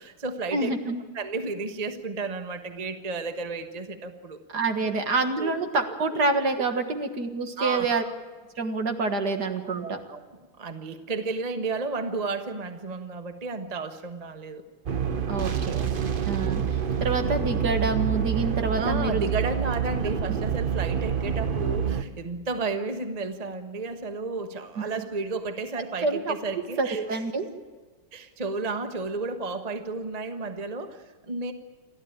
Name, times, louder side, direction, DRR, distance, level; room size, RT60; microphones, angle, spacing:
voice 1, 0.0-0.7 1.1-4.4 4.8-4.9 5.4-5.5 7.6-8.1 9.7-10.2 10.6-14.6 18.8-27.2 28.1-31.5, right 3 dB, 25° right, 7 dB, 1.0 m, -32 dB
voice 2, 0.5-1.0 4.5-8.0 8.6-10.0 15.3-15.9 16.3-19.2 20.3-20.4 24.8-24.9 26.0-26.3 26.8-27.5, right 3 dB, 50° right, 6 dB, 2.2 m, -27 dB
sound 1, 14.9-22.0, right 7 dB, 65° right, 0.5 m, -27 dB
29.0 x 12.0 x 8.9 m, 1.4 s
omnidirectional pair, 2.3 m